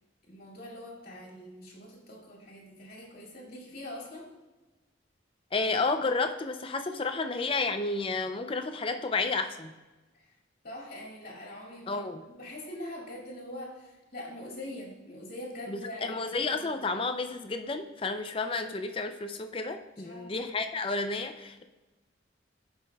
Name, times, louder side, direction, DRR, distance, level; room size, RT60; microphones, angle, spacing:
voice 1, 0.2-4.3 10.1-10.4 10.6-16.7 20.0-20.3, left 1 dB, 50° left, -3 dB, 2.3 m, -43 dB
voice 2, 5.5-9.8 11.9-12.2 15.7-21.6, left 3 dB, 30° left, 7 dB, 0.5 m, -31 dB
15.0 x 5.9 x 2.3 m, 1.2 s
head